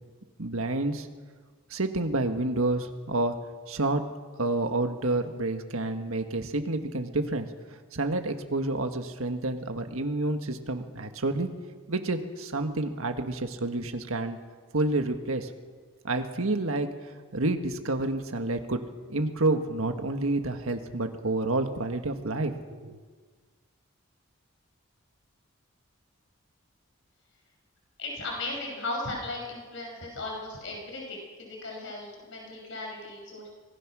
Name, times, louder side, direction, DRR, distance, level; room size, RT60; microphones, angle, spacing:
voice 1, 0.4-1.1 1.7-3.3 3.7-4.1 4.4-7.5 7.9-11.5 11.9-14.4 14.7-15.5 16.0-18.8 19.1-23.0, right 2 dB, 80° right, 6 dB, 1.6 m, -29 dB
voice 2, 28.0-33.5, left 2 dB, 60° left, 0 dB, 6.0 m, -36 dB
26.0 x 19.5 x 6.2 m, 1.5 s
head